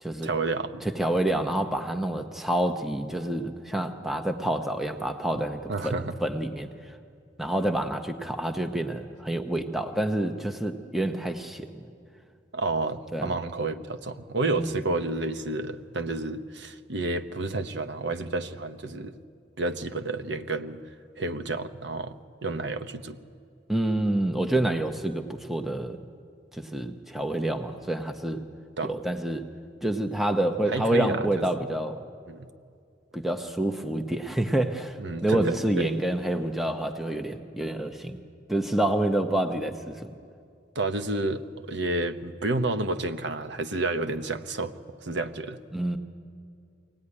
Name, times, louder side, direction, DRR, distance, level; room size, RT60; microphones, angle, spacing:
voice 1, 0.2-0.8 5.7-6.1 12.5-19.1 19.6-20.8 21.2-22.2 22.4-23.2 28.8-28.9 30.7-31.4 32.3-32.5 35.0-35.9 40.7-44.7 45.0-45.6, right 2 dB, 70° right, 9 dB, 1.0 m, -30 dB
voice 2, 0.8-5.9 6.2-7.0 7.4-11.9 13.1-13.4 14.6-14.8 23.7-26.0 26.5-28.4 28.8-29.4 29.8-32.0 33.1-38.2 38.5-40.1 45.7-46.0, right 1 dB, ahead, 6 dB, 0.8 m, -28 dB
23.5 x 17.5 x 9.8 m, 2.4 s
head